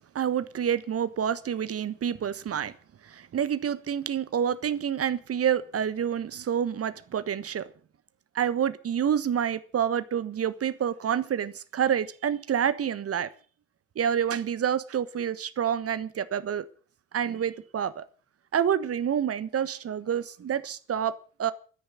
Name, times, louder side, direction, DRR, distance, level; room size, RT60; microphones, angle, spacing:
voice 1, 0.1-2.7 3.0-7.7 8.3-13.3 13.9-16.7 17.1-18.0 18.5-21.5, right 8 dB, 35° right, 1.3 m, -28 dB
13.5 x 10.0 x 9.1 m
figure-of-eight pair, 55°, 40 cm